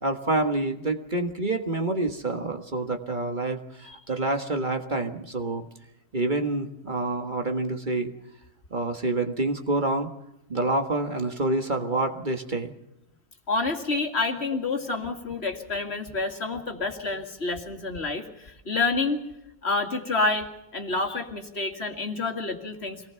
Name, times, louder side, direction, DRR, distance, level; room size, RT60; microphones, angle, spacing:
voice 1, 0.0-5.7 6.1-8.1 8.7-10.1 10.5-12.7, right 2 dB, 40° right, 5 dB, 1.7 m, -27 dB
voice 2, 13.5-19.2 19.6-20.5 20.7-23.0, left 3 dB, 55° left, 5 dB, 2.3 m, -28 dB
24.5 x 19.0 x 5.8 m, 0.86 s
omnidirectional pair, 1.3 m